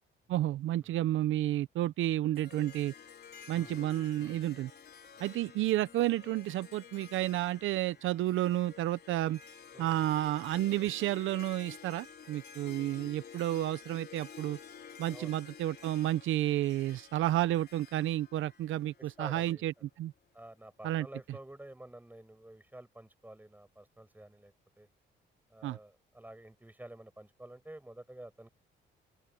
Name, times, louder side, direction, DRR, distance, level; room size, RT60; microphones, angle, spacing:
voice 1, 0.3-2.9 3.5-4.7 5.2-9.4 9.8-14.6 15.0-20.1 20.8-21.1 25.6-25.8, right 14 dB, 80° right, 0.7 m, -31 dB
Harp, 2.3-19.6, left 7 dB, 55° left, 4.5 m, -52 dB
voice 2, 9.7-10.1 15.1-15.3 19.0-19.8 20.3-24.9 25.5-28.5, right 1 dB, 10° right, 6.3 m, -50 dB
open air
cardioid pair, 90°, 20 cm